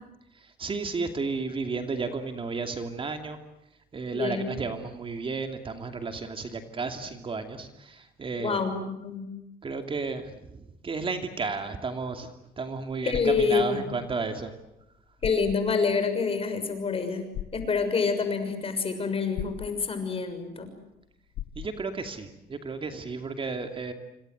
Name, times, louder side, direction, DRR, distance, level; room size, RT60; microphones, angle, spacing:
voice 1, 0.3-3.4 3.9-8.6 9.6-14.5 21.6-23.9, right 4 dB, 30° right, 6 dB, 2.6 m, -33 dB
voice 2, 4.1-4.6 8.4-9.3 13.0-13.8 15.2-17.3 17.5-20.7, left 5 dB, 35° left, 8 dB, 6.5 m, -27 dB
sound 1, 13.1-13.5 14.8-14.9 15.2-15.6 17.3-17.7 19.4-19.7 21.3-21.7, left 11 dB, 75° left, 1.3 m, -36 dB
27.0 x 26.0 x 8.0 m, 0.88 s
cardioid pair, 110°, 17 cm